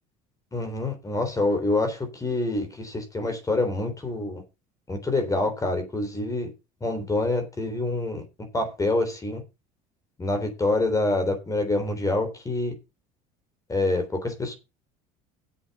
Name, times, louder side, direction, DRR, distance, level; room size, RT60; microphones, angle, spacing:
voice 1, 0.5-4.4 4.9-6.5 6.8-8.2 8.5-9.4 10.2-12.7 13.7-14.5, left 2 dB, 20° left, 3.8 m, -26 dB
8.1 x 7.6 x 6.8 m
supercardioid pair, 105°, 18 cm